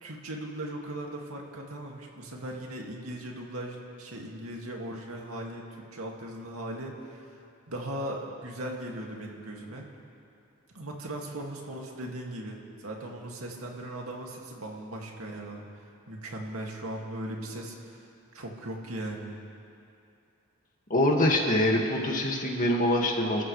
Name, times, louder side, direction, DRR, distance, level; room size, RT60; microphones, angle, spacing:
voice 1, 0.0-7.3 7.7-9.9 10.7-15.6 16.1-18.0 18.3-19.4, right 1 dB, 90° right, -1 dB, 2.3 m, -38 dB
voice 2, 20.9-23.4, left 1 dB, 40° left, 0 dB, 2.0 m, -24 dB
30.0 x 14.0 x 3.3 m, 2.6 s
head